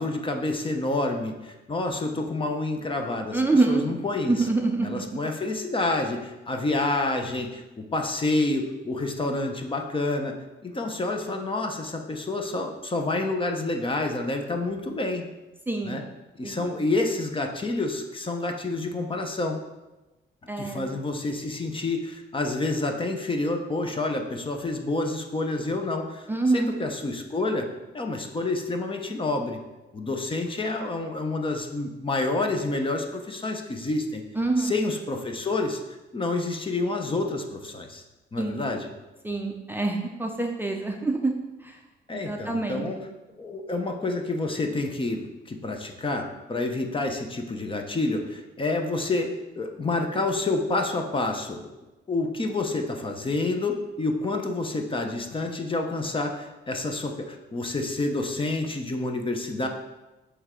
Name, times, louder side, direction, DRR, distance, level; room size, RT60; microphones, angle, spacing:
voice 1, 0.0-4.5 4.8-10.4 10.6-15.2 15.8-16.0 16.4-19.6 20.6-27.7 27.9-29.6 29.9-34.2 34.6-35.8 36.1-38.0 38.3-38.9 42.1-43.0 43.4-51.7 52.1-59.7, left 2 dB, 25° left, 4 dB, 0.7 m, -28 dB
voice 2, 3.3-3.8 4.3-4.9 15.7-16.0 16.4-16.7 20.5-20.9 26.3-26.8 34.4-34.8 38.4-38.6 39.2-41.3 42.1-42.8, right 3 dB, 10° right, 2 dB, 0.5 m, -25 dB
7.6 x 3.3 x 3.7 m, 1.1 s
cardioid pair, 90°, 20 cm